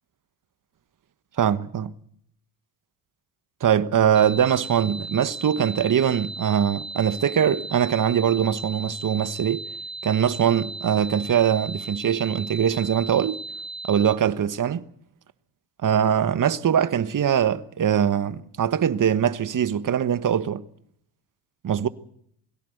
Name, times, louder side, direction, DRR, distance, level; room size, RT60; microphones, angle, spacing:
voice 1, 1.4-1.9 3.6-9.6 10.0-13.4 13.8-14.8 15.8-20.6 21.6-21.9, right 9 dB, 40° right, 1.3 m, -22 dB
sound 1, 4.1-14.1, right 3 dB, 10° left, 1.6 m, -36 dB
23.0 x 16.5 x 7.9 m
supercardioid pair, 65°, 48 cm